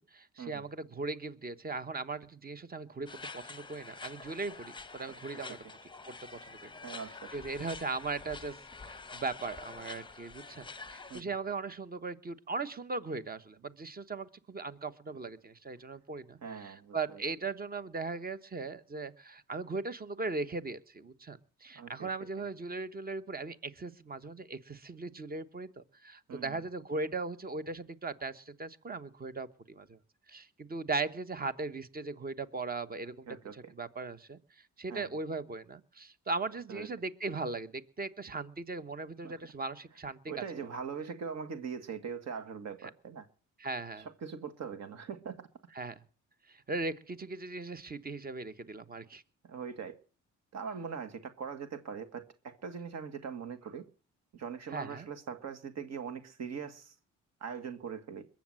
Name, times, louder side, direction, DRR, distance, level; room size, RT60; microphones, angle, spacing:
voice 1, 0.1-5.6 6.1-6.2 6.5-6.7 7.3-8.6 8.8-30.0 30.3-33.3 33.5-34.4 34.8-40.2 43.6-44.1 45.7-45.9 46.5-49.2 54.7-55.1, right 3 dB, 30° right, 1.2 m, -38 dB
sound 1, 3.1-11.2, left 4 dB, 15° left, 0.8 m, -47 dB
voice 2, 6.8-7.3 11.1-11.3 16.4-17.2 21.7-22.1 26.3-26.6 33.0-33.7 34.9-35.1 36.7-36.9 39.2-39.3 40.3-43.3 44.0-45.5 49.4-50.0 50.5-53.8 54.3-56.9 57.4-58.3, right 6 dB, 60° right, 1.8 m, -41 dB
21.5 x 7.3 x 7.6 m
cardioid pair, 90°, 30 cm